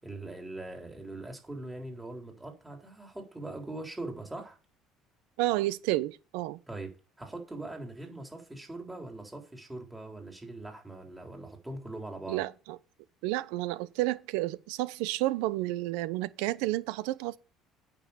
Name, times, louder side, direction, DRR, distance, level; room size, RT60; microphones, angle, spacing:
voice 1, 0.0-4.6 6.7-12.4, right 2 dB, 10° right, 3.7 m, -41 dB
voice 2, 5.4-6.6 12.3-12.8 13.2-17.4, right 17 dB, 85° right, 0.6 m, -31 dB
9.0 x 6.2 x 7.0 m
supercardioid pair, 95°, 0 cm